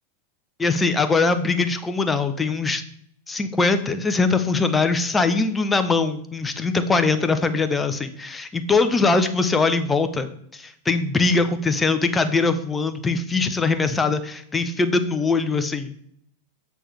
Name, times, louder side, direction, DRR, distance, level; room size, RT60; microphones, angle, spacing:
voice 1, 0.6-2.8 3.3-15.9, left 3 dB, 15° left, 10 dB, 0.8 m, -22 dB
7.6 x 6.3 x 3.4 m, 0.68 s
figure-of-eight pair, 95°, 0 cm